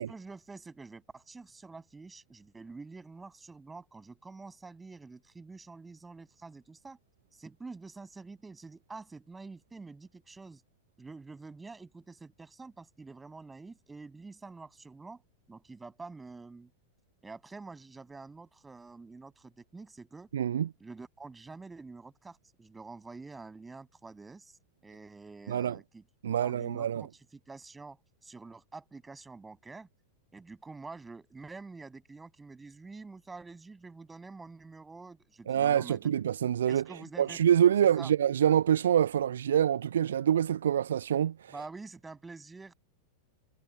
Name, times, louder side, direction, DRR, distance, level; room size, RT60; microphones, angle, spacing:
voice 1, 0.0-7.0 7.3-10.6 11.0-15.2 15.5-16.7 17.2-20.3 20.8-24.6 24.8-26.0 26.4-28.0 28.2-29.9 30.3-36.0 36.7-37.4 38.0-38.1 41.5-42.7, right 3 dB, 10° right, 7.3 m, -47 dB
voice 2, 20.3-20.7 25.5-25.8 26.2-27.1 35.5-41.5, right 9 dB, 65° right, 0.4 m, -26 dB
figure-of-eight pair, 90°, 0 cm